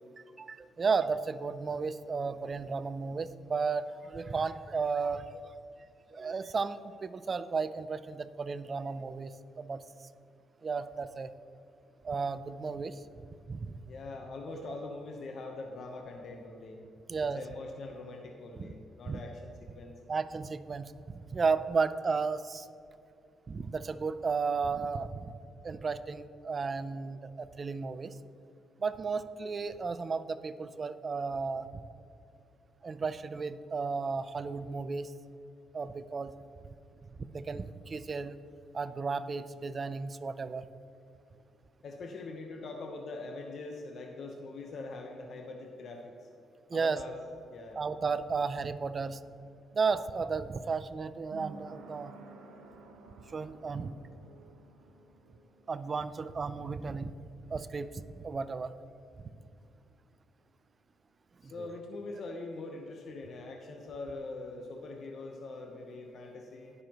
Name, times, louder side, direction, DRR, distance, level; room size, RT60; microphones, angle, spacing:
voice 1, 0.4-5.5 6.1-9.8 10.6-11.3 12.0-13.0 13.5-13.8 17.1-17.4 18.6-18.7 19.1-19.2 20.1-22.7 23.5-25.2 25.6-28.1 28.8-31.7 32.8-35.1 35.7-36.3 37.3-38.4 38.7-40.7 46.7-47.0 47.7-49.2 49.7-52.1 53.3-53.9 55.7-57.1 57.5-58.7 61.4-61.5, right 4 dB, 40° right, 13 dB, 0.5 m, -33 dB
voice 2, 13.9-16.8 17.2-19.9 41.8-46.3 46.7-47.2 47.5-47.8 61.4-66.7, left 3 dB, 60° left, 2 dB, 1.0 m, -43 dB
sound 1, 49.3-59.7 60.0-60.1, right 3 dB, 85° right, 1.1 m, -55 dB
19.5 x 6.7 x 3.0 m, 2.6 s
cardioid pair, 90°, 0 cm